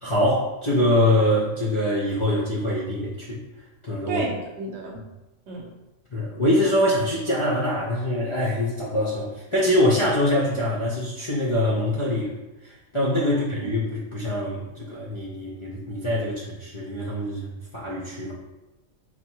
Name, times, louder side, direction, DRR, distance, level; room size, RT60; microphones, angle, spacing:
voice 1, 0.0-3.4 3.8-4.2 6.1-12.3 12.6-18.3, left 1 dB, 40° left, -5 dB, 0.4 m, -24 dB
voice 2, 4.1-5.0 5.5-5.7 13.2-13.7, right 2 dB, 60° right, 0 dB, 0.9 m, -33 dB
4.0 x 2.2 x 4.5 m, 1.0 s
omnidirectional pair, 1.4 m